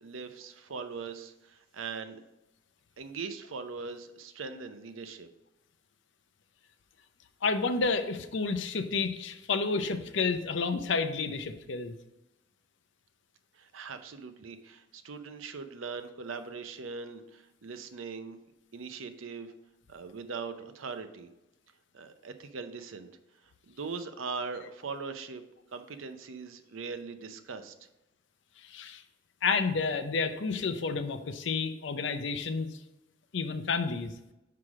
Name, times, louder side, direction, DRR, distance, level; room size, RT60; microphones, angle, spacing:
voice 1, 0.0-2.2 3.0-5.3 13.5-18.4 18.7-19.5 19.9-21.3 21.9-23.1 23.4-25.4 25.7-27.7, right 5 dB, 90° right, 9 dB, 0.6 m, -40 dB
voice 2, 7.4-12.0 28.6-29.0 29.4-32.7 33.3-34.1, left 4 dB, 70° left, 9 dB, 0.6 m, -30 dB
5.9 x 4.8 x 4.8 m, 0.95 s
head